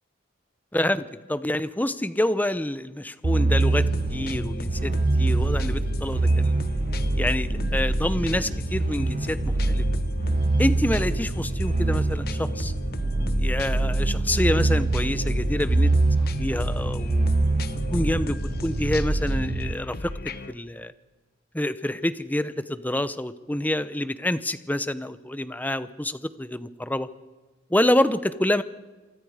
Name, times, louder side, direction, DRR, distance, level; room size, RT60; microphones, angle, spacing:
voice 1, 0.7-4.9 5.2-6.6 7.1-9.8 10.6-12.7 13.4-15.9 16.3-17.3 17.9-20.1 20.5-20.9 21.5-27.1 27.7-28.6, left 1 dB, 10° left, 14 dB, 0.8 m, -27 dB
sound 1, 3.2-19.7, right 2 dB, 35° right, 0.6 m, -24 dB
sound 2, 3.6-20.5, left 2 dB, 55° left, 1.0 m, -36 dB
27.5 x 24.0 x 5.0 m, 1.2 s
head